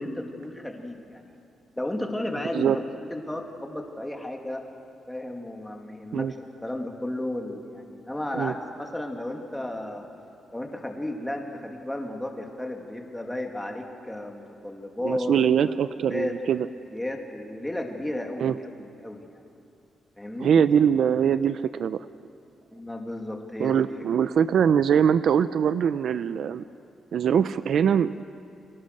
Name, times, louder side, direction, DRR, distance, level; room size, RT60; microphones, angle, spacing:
voice 1, 0.0-1.3 1.8-2.8 3.1-4.6 5.1-6.4 6.6-10.1 10.5-15.3 16.1-16.3 16.9-19.4 20.2-20.5 22.7-23.9 24.1-24.3, left 1 dB, 5° left, 2 dB, 2.4 m, -33 dB
voice 2, 15.0-16.7 18.4-18.5 20.4-22.1 23.6-26.6 27.1-28.2, right 8 dB, 60° right, 13 dB, 0.5 m, -22 dB
29.5 x 25.0 x 6.6 m, 2.6 s
wide cardioid pair, 165°, 0 cm